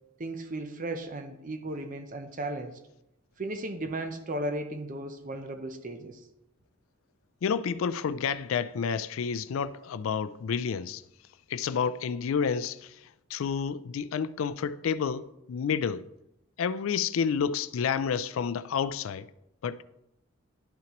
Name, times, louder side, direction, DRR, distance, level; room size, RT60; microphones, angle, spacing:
voice 1, 0.2-2.8 3.4-6.2, right 1 dB, 40° right, 0.6 m, -35 dB
voice 2, 7.4-11.0 11.5-12.9 13.3-16.1 16.6-19.2 19.6-19.8, left 6 dB, 75° left, 0.4 m, -30 dB
11.0 x 5.8 x 3.0 m
head